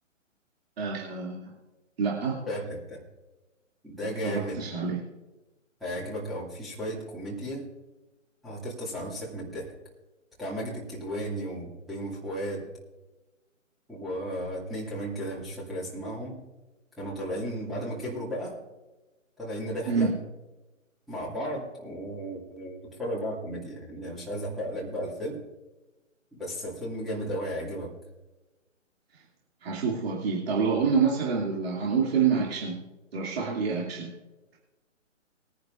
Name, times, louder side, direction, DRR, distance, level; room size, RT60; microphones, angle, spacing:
voice 1, 0.8-1.5 2.0-2.4 4.2-5.0 19.9-20.1 29.6-32.8 33.1-34.1, right 5 dB, 50° right, -3 dB, 2.6 m, -27 dB
voice 2, 2.5-3.0 3.8-4.6 5.8-7.7 8.4-9.7 10.4-12.7 13.9-16.4 17.0-18.6 19.4-20.1 21.1-25.4 26.3-27.9, equal, ahead, -8 dB, 2.2 m, -34 dB
21.5 x 10.5 x 2.5 m, 1.1 s
figure-of-eight pair, 145°, 39 cm